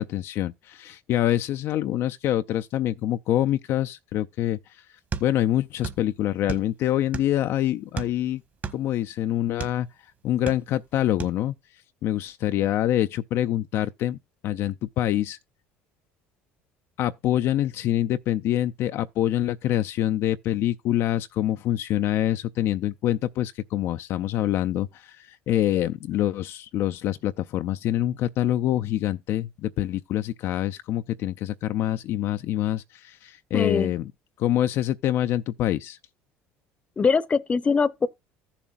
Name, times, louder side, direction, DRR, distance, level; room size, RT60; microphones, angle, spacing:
voice 1, 0.0-4.6 5.2-8.4 8.7-9.9 10.2-11.5 12.0-14.2 14.4-15.4 17.0-34.1 34.4-36.0, left 12 dB, 60° left, 0.4 m, -25 dB
sound 1, 5.1-6.1 6.3-7.5 7.9-9.8 10.3-10.9 11.2-11.4, right 6 dB, 35° right, 1.4 m, -33 dB
voice 2, 33.5-33.9 37.0-38.1, left 5 dB, 25° left, 0.7 m, -22 dB
14.5 x 7.1 x 2.5 m
supercardioid pair, 105°, 5 cm